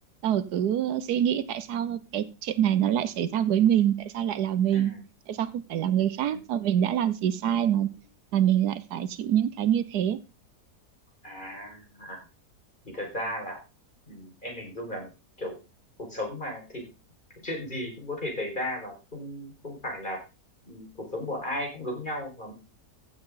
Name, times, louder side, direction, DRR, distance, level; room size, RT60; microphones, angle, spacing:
voice 1, 0.2-4.9 5.3-7.9 8.3-10.2, right 10 dB, 80° right, 14 dB, 1.3 m, -25 dB
voice 2, 4.7-5.0 6.3-6.4 11.2-12.2 12.8-13.6 14.1-15.1 15.4-15.6 16.0-16.8 17.4-20.2 20.6-22.5, left 1 dB, 30° left, 0 dB, 5.0 m, -35 dB
15.0 x 7.6 x 3.8 m, 0.29 s
omnidirectional pair, 1.7 m